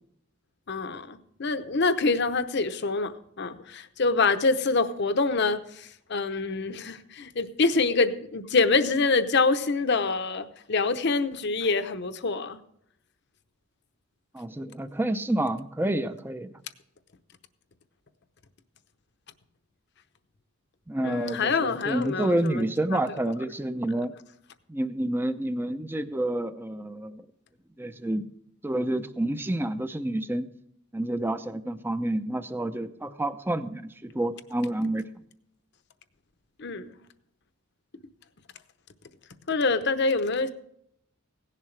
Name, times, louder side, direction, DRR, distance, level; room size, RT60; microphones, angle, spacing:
voice 1, 0.7-12.6 21.0-22.6 22.9-23.0 36.6-37.0 39.5-40.5, left 3 dB, 55° left, 10 dB, 0.8 m, -26 dB
voice 2, 14.3-16.5 20.9-24.1 24.7-27.2 27.8-28.3 28.6-30.5 30.9-35.1, right 1 dB, 10° right, 11 dB, 0.5 m, -29 dB
17.0 x 11.0 x 3.3 m, 0.71 s
head